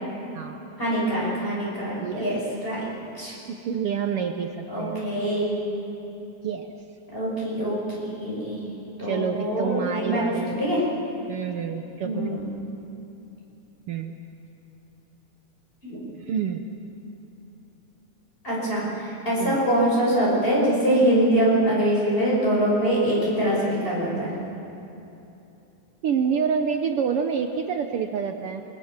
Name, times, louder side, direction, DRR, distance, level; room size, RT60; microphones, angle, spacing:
voice 1, 0.8-2.8 3.2-3.3 4.7-5.5 7.1-8.6 9.0-10.2 10.6-10.8 12.0-12.4 15.8-16.0 18.4-24.3, right 1 dB, 15° left, -6 dB, 6.7 m, -24 dB
voice 2, 3.5-5.0 6.4-6.7 9.0-10.6 11.3-12.4 13.9-14.2 16.2-16.6 19.4-19.6 26.0-28.6, right 7 dB, 65° right, 6 dB, 1.5 m, -28 dB
28.0 x 22.0 x 7.3 m, 2.9 s
omnidirectional pair, 3.4 m